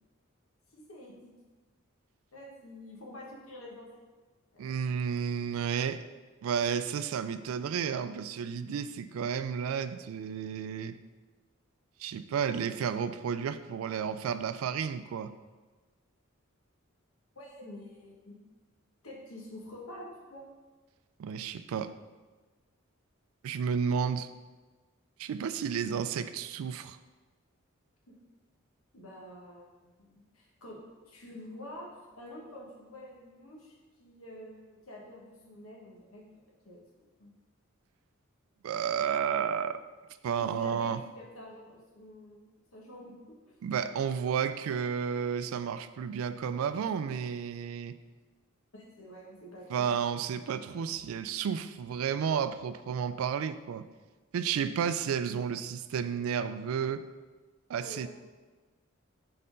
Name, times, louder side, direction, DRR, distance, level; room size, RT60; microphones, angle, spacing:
voice 1, 0.7-1.3 2.3-4.0 4.5-4.9 17.3-18.4 19.0-20.5 28.1-28.2 28.9-30.8 31.1-36.2 36.6-36.8 37.2-37.3 40.4-43.1 43.4-43.6 48.7-50.0 57.8-58.1, left 1 dB, 80° left, -2 dB, 1.3 m, -47 dB
voice 2, 4.6-6.1 6.4-11.0 12.0-15.3 21.2-22.0 23.4-24.3 25.2-27.0 38.6-39.8 40.2-41.0 43.6-48.0 49.7-53.8 54.3-57.0 57.7-58.1, right 7 dB, 80° right, 13 dB, 0.3 m, -32 dB
4.3 x 4.2 x 5.1 m, 1.3 s
head